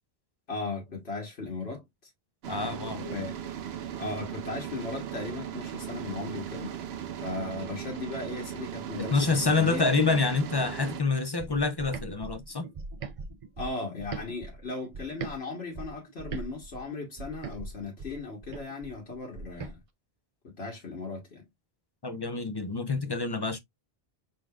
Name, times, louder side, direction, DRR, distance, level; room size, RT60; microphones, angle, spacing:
voice 1, 0.5-1.8 2.9-3.3 4.0-6.7 7.2-9.9 13.6-19.8 20.4-21.4, left 3 dB, 85° left, 1.6 m, -37 dB
sound 1, 2.4-11.0, right 9 dB, 80° right, 0.9 m, -38 dB
voice 2, 2.5-3.0 9.0-12.7 22.0-23.6, left 4 dB, 35° left, 0.4 m, -27 dB
sound 2, 11.4-15.4 15.7-19.7, right 4 dB, 45° right, 0.5 m, -41 dB
4.8 x 4.0 x 2.3 m
omnidirectional pair, 1.0 m